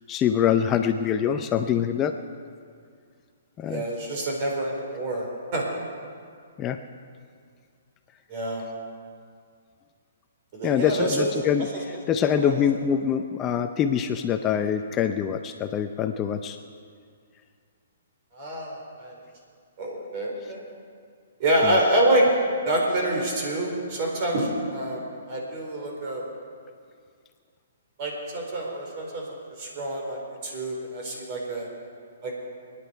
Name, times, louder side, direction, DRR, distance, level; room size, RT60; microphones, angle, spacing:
voice 1, 0.1-2.2 3.6-3.8 6.6-6.8 10.6-11.7 12.1-16.6, left 8 dB, 20° left, 7 dB, 0.6 m, -24 dB
voice 2, 3.6-5.3 5.5-5.6 8.3-8.6 10.5-11.3 12.4-12.6 18.3-19.2 19.8-20.6 21.4-22.3 22.7-26.2 28.0-29.2 29.6-31.7 32.2-32.3, right 1 dB, 40° right, -1 dB, 4.4 m, -26 dB
29.0 x 10.0 x 4.7 m, 2.2 s
hypercardioid pair, 150°, 0 cm